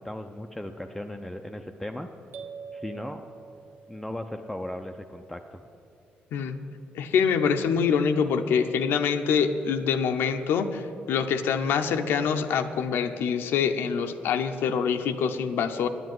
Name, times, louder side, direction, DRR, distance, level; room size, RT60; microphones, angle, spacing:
voice 1, 0.0-2.1 2.7-3.2 3.9-5.6, left 1 dB, 5° left, 4 dB, 0.5 m, -37 dB
sound 1, 2.3-4.2, right 5 dB, 75° right, 1.0 m, -43 dB
voice 2, 6.9-15.9, left 6 dB, 85° left, 6 dB, 0.7 m, -25 dB
9.8 x 8.0 x 9.4 m, 2.6 s
cardioid pair, 100°, 4 cm